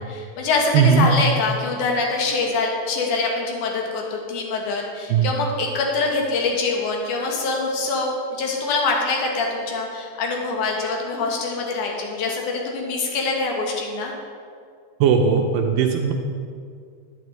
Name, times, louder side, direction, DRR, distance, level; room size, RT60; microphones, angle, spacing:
voice 1, 0.0-14.1, left 3 dB, 65° left, 0 dB, 2.3 m, -24 dB
voice 2, 0.7-1.1 5.1-5.3 15.0-16.1, right 6 dB, 90° right, 2 dB, 1.9 m, -18 dB
10.5 x 9.7 x 3.2 m, 2.2 s
omnidirectional pair, 4.5 m